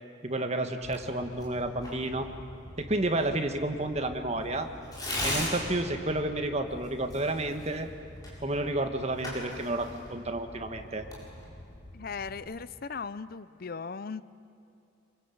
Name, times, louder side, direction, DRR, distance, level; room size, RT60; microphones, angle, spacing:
voice 1, 0.2-2.3 2.8-4.7 5.2-7.9 8.4-11.0, right 1 dB, 35° right, 6 dB, 1.7 m, -31 dB
Tearing, 0.8-12.4, left 1 dB, 20° left, 7.5 m, -40 dB
voice 2, 11.9-14.2, left 5 dB, 50° left, 16 dB, 0.6 m, -38 dB
27.0 x 24.0 x 8.7 m, 2.8 s
head